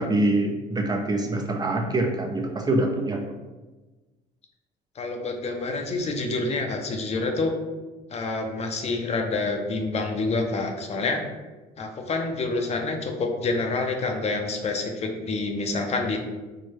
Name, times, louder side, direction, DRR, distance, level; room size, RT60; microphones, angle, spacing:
voice 1, 0.0-3.4, right 2 dB, 25° right, 3 dB, 0.4 m, -25 dB
voice 2, 5.0-7.5 8.1-11.2 11.8-16.2, left 3 dB, 40° left, 4 dB, 0.5 m, -27 dB
4.6 x 2.0 x 3.0 m, 1.2 s
cardioid pair, 110°, 17 cm